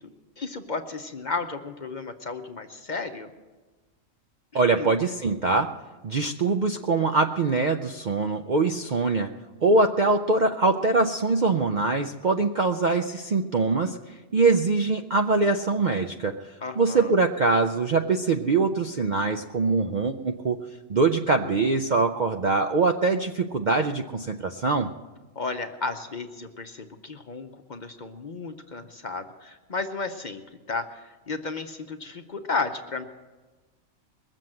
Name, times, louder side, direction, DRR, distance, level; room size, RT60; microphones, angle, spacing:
voice 1, 0.0-3.3 4.5-4.9 16.6-17.1 25.3-30.4 30.7-33.0, left 3 dB, 40° left, 6 dB, 0.8 m, -33 dB
voice 2, 4.5-5.7 6.0-9.3 9.6-16.4 16.8-20.6 20.9-24.9, right 3 dB, 50° right, 5 dB, 0.5 m, -23 dB
21.0 x 7.6 x 7.6 m, 1.3 s
omnidirectional pair, 1.4 m